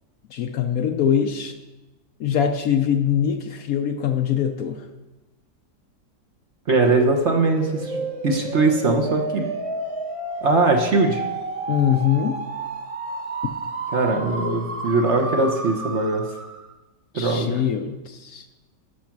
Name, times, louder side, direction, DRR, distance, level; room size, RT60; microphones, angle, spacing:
voice 1, 0.3-1.6 2.2-4.9 11.7-12.4 17.1-18.5, left 8 dB, 65° left, 7 dB, 1.0 m, -23 dB
voice 2, 6.7-9.4 10.4-11.2 13.9-16.2 17.1-17.6, right 3 dB, 45° right, 2 dB, 1.2 m, -21 dB
sound 1, 6.9-16.7, right 2 dB, 25° right, 0.8 m, -31 dB
11.5 x 6.1 x 5.9 m, 1.1 s
omnidirectional pair, 1.8 m